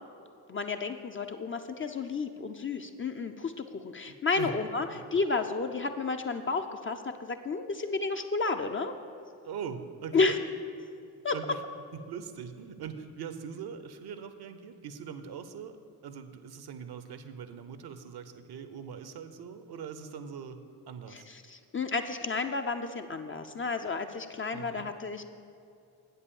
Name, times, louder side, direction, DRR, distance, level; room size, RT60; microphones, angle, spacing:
voice 1, 0.5-8.9 10.1-10.4 11.2-11.3 21.1-25.2, left 4 dB, 25° left, 6 dB, 0.5 m, -31 dB
voice 2, 4.1-4.6 4.9-5.0 9.4-10.4 11.3-11.6 12.0-15.8 16.0-20.6 20.9-21.3 24.5-24.9, right 7 dB, 50° right, 10 dB, 0.8 m, -41 dB
8.1 x 5.6 x 7.1 m, 2.5 s
hypercardioid pair, 40°, 50 cm